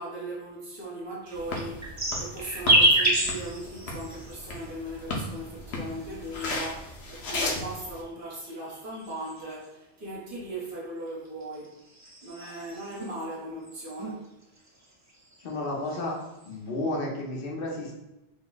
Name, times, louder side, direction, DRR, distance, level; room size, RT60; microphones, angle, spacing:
voice 1, 0.0-11.8 12.2-14.3, right 1 dB, 55° right, -5 dB, 1.1 m, -38 dB
sound 1, 1.2-4.7 5.6-7.0 7.8-9.7 11.1-13.2 13.6-14.1 14.4-15.5 15.9-16.5, right 1 dB, 30° right, 0.3 m, -28 dB
sound 2, 1.3-8.0, left 2 dB, 90° left, 0.9 m, -36 dB
voice 2, 15.4-16.2 16.4-17.9, left 2 dB, 65° left, -2 dB, 1.0 m, -32 dB
3.3 x 2.1 x 3.8 m, 0.91 s
omnidirectional pair, 1.1 m